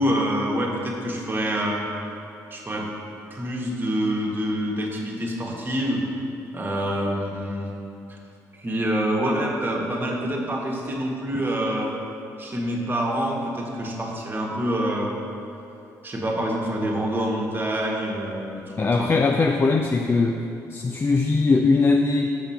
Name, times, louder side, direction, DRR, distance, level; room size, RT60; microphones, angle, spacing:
voice 1, 0.0-1.8 2.5-2.9 3.3-6.0 6.5-7.7 8.1-8.2 8.6-11.9 12.4-15.2 16.0-19.1, equal, 30° right, -1 dB, 1.6 m, -26 dB
voice 2, 18.8-20.4 20.7-22.3, left 3 dB, 30° left, 4 dB, 0.5 m, -20 dB
6.8 x 5.9 x 5.6 m, 2.9 s
supercardioid pair, 70°, 7 cm